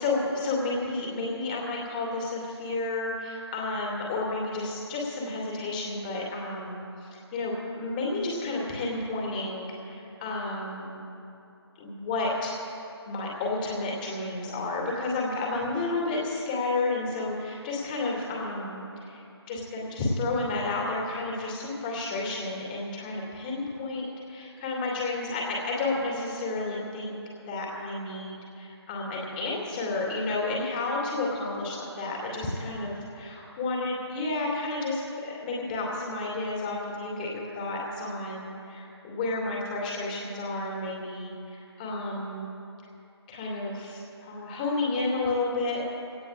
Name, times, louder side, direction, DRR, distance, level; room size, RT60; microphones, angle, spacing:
voice 1, 0.0-6.8 7.3-11.0 11.8-12.5 13.1-19.2 19.5-27.1 27.4-42.5 43.3-45.9, left 2 dB, 20° left, -3 dB, 2.4 m, -31 dB
23.0 x 17.5 x 2.5 m, 2.7 s
figure-of-eight pair, 155°, 14 cm